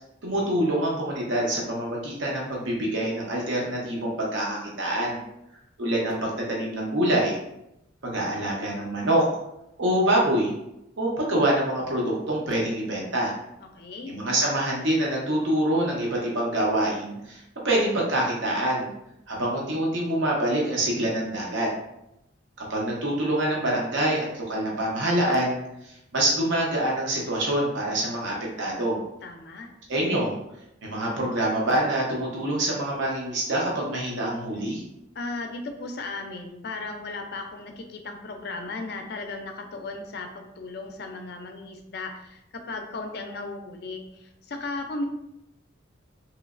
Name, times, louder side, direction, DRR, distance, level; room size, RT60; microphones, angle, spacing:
voice 1, 0.2-5.2 5.8-7.4 8.0-9.2 9.8-10.5 11.0-13.3 14.1-18.9 19.3-21.7 22.6-25.6 25.8-29.0 29.9-30.3 30.8-34.8, right 1 dB, 70° right, -3 dB, 0.7 m, -25 dB
voice 2, 13.6-14.2 29.2-29.7 35.2-45.0, left 3 dB, 55° left, 5 dB, 0.4 m, -36 dB
3.1 x 3.0 x 2.4 m, 0.84 s
head